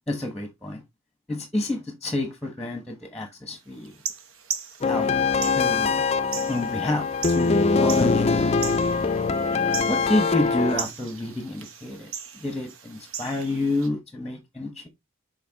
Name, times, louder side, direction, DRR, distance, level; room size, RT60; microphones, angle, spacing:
voice 1, 0.1-0.8 1.3-4.0 4.8-5.1 5.6-6.0 6.5-9.0 9.9-14.9, left 1 dB, 5° left, 1.1 m, -29 dB
sound 1, 3.9-13.9, right 7 dB, 80° right, 1.0 m, -38 dB
sound 2, 4.8-10.8, left 4 dB, 30° left, 0.4 m, -23 dB
6.9 x 4.3 x 3.4 m
head